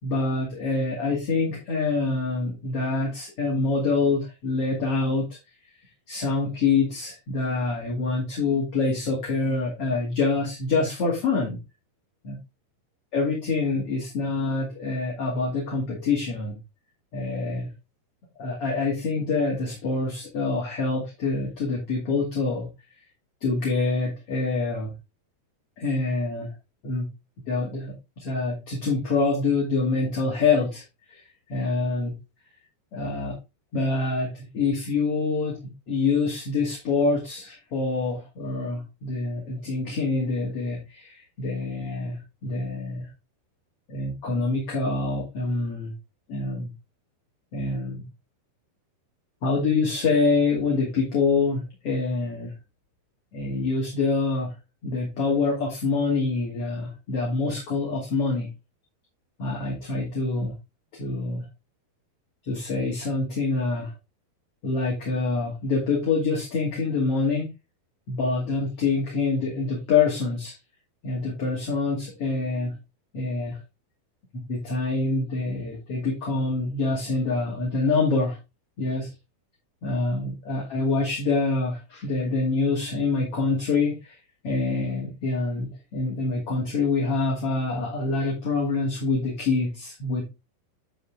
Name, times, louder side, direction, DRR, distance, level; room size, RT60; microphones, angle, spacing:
voice 1, 0.0-5.2 6.1-11.6 12.2-12.4 13.1-16.6 17.1-17.7 18.4-22.7 23.4-24.9 25.8-26.5 26.8-27.1 27.5-30.8 31.1-31.2 31.5-32.1 32.9-33.3 33.7-35.5 35.9-43.1 43.9-45.9 46.3-46.7 47.5-48.0 49.4-52.5 53.3-54.5 54.8-58.5 59.4-60.5 61.0-61.4 62.5-63.9 64.6-67.5 68.1-70.5 71.0-72.7 73.1-73.6 74.5-78.4 78.8-79.1 79.8-84.1 84.4-90.2, left 3 dB, 40° left, -3 dB, 3.0 m, -26 dB
11.0 x 4.6 x 3.6 m, 0.25 s
omnidirectional pair, 4.7 m